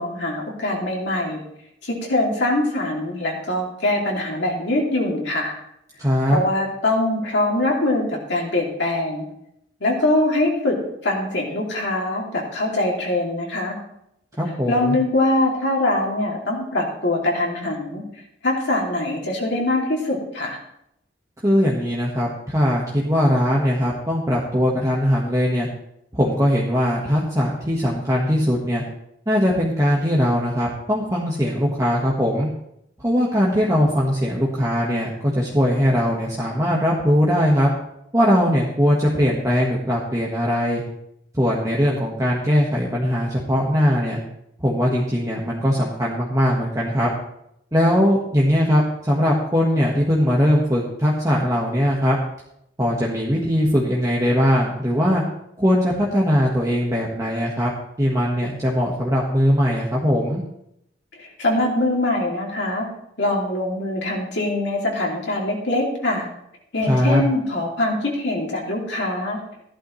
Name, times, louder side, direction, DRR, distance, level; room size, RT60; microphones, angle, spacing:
voice 1, 0.0-1.4 1.8-5.5 6.3-9.3 9.8-10.8 11.0-13.8 14.7-18.0 18.4-20.6 61.2-62.9 63.2-66.3 66.7-69.4, left 1 dB, 65° left, -2 dB, 2.7 m, -23 dB
voice 2, 6.0-6.4 14.4-14.9 21.4-25.7 26.1-28.8 29.3-32.5 33.0-37.7 38.1-40.8 41.4-44.2 44.6-47.1 47.7-52.2 52.8-55.2 55.6-57.7 58.0-60.4 66.9-67.2, equal, 15° right, -4 dB, 1.5 m, -20 dB
15.0 x 11.5 x 3.2 m, 0.78 s
head